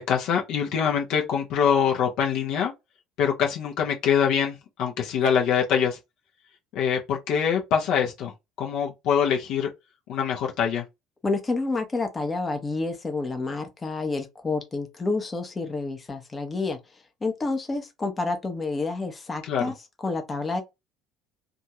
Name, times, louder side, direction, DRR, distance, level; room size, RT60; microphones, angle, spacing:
voice 1, 0.0-2.7 3.2-6.0 6.7-9.7 10.1-10.8 19.4-19.7, left 7 dB, 60° left, 0.7 m, -24 dB
voice 2, 11.2-16.8 17.2-19.7 20.0-20.6, left 3 dB, 25° left, 0.8 m, -29 dB
2.6 x 2.4 x 2.9 m
figure-of-eight pair, 60°, 0 cm